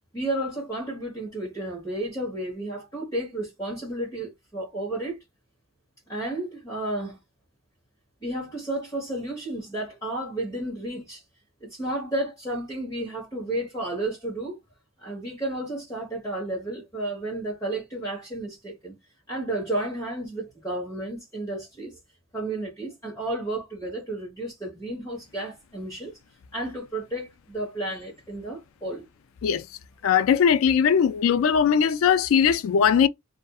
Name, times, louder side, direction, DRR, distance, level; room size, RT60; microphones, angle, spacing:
voice 1, 0.1-5.2 6.1-7.2 8.2-11.2 11.6-14.6 15.0-18.9 19.3-22.0 22.3-26.1 26.5-29.0, right 1 dB, 15° left, 1.3 m, -32 dB
voice 2, 30.0-33.1, left 7 dB, 75° left, 0.3 m, -20 dB
2.6 x 2.5 x 2.3 m
head